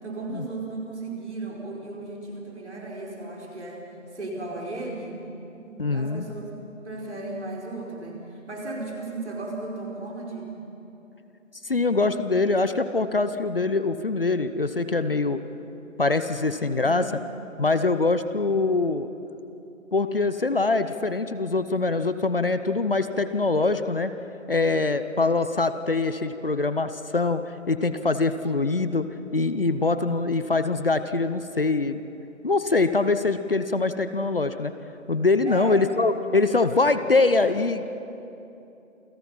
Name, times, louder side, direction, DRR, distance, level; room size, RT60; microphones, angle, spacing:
voice 1, 0.0-3.9 4.1-5.2 5.6-6.5 6.8-8.2 8.5-10.5 16.8-17.3 35.4-35.8, right 2 dB, 55° right, -2 dB, 4.9 m, -35 dB
voice 2, 5.8-6.3 11.6-15.4 16.0-17.1 17.6-19.1 19.9-24.1 24.5-27.4 27.7-32.0 32.4-34.7 35.1-38.0, left 3 dB, 45° left, 11 dB, 0.8 m, -23 dB
28.0 x 17.0 x 5.7 m, 2.9 s
figure-of-eight pair, 155°, 40 cm